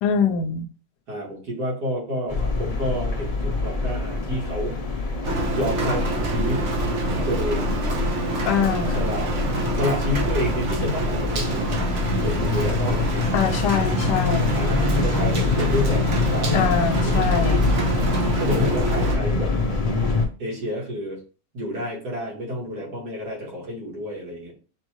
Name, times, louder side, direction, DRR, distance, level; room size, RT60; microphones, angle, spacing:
voice 1, 0.0-0.7 8.5-9.1 13.3-14.6 16.5-17.7, left 6 dB, 80° left, 6 dB, 1.2 m, -23 dB
voice 2, 1.1-4.7 5.5-6.7 7.3-7.8 8.9-9.3 9.7-11.8 12.2-13.3 14.5-16.7 17.0-17.4 18.4-19.5 20.4-21.2 21.5-24.5, equal, 70° right, -3 dB, 2.5 m, -29 dB
sound 1, 2.3-20.3, left 3 dB, 40° left, 0.5 m, -25 dB
Rain, 5.2-19.2, right 2 dB, 50° right, 1.0 m, -28 dB
6.7 x 2.6 x 3.0 m, 0.36 s
omnidirectional pair, 1.9 m